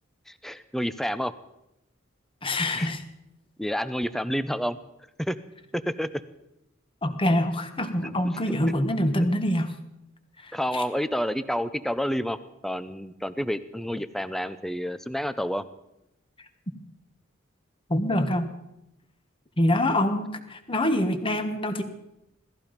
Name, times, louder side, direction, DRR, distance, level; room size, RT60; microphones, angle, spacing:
voice 1, 0.3-1.3 2.7-2.9 3.6-4.8 5.2-5.4 5.7-6.1 10.5-12.4 12.6-15.6, equal, ahead, 12 dB, 0.6 m, -29 dB
voice 2, 2.4-3.0 7.0-9.7 10.7-10.8 17.9-18.5 19.6-21.8, left 1 dB, 25° left, 8 dB, 1.4 m, -25 dB
17.5 x 14.0 x 5.2 m, 0.87 s
head